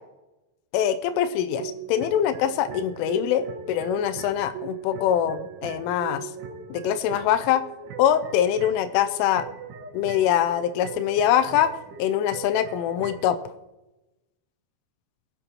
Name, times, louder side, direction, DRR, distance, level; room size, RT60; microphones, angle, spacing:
voice 1, 0.7-6.3 6.7-7.6 8.0-9.5 9.9-11.7 12.0-13.4, left 10 dB, 90° left, 9 dB, 3.2 m, -23 dB
sound 1, 1.5-13.3, right 6 dB, 85° right, 4.5 m, -39 dB
21.5 x 9.6 x 2.9 m, 1.0 s
omnidirectional pair, 5.5 m